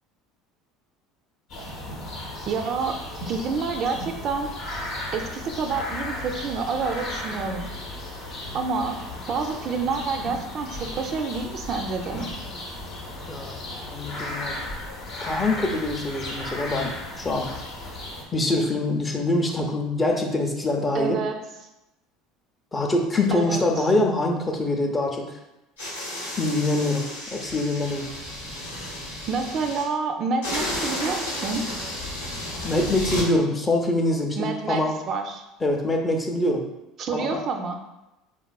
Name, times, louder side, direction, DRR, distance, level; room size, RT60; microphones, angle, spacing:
sound 1, 1.5-18.2, left 1 dB, 60° left, 0.8 m, -35 dB
voice 1, 2.5-4.5 5.1-7.7 8.5-9.0 9.3-12.2 20.9-21.4 23.3-23.9 29.3-31.6 34.4-35.4 37.0-37.8, right 4 dB, 50° right, 5 dB, 0.3 m, -28 dB
voice 2, 13.9-14.6 15.2-17.5 18.3-21.2 22.7-25.3 26.4-28.1 32.6-34.9 35.6-36.7 37.1-37.4, left 2 dB, 20° left, 1 dB, 0.5 m, -24 dB
sound 2, 25.8-29.8 30.4-33.3, left 1 dB, 90° left, 0.9 m, -32 dB
3.4 x 2.4 x 2.2 m, 0.94 s
hypercardioid pair, 80°, 0 cm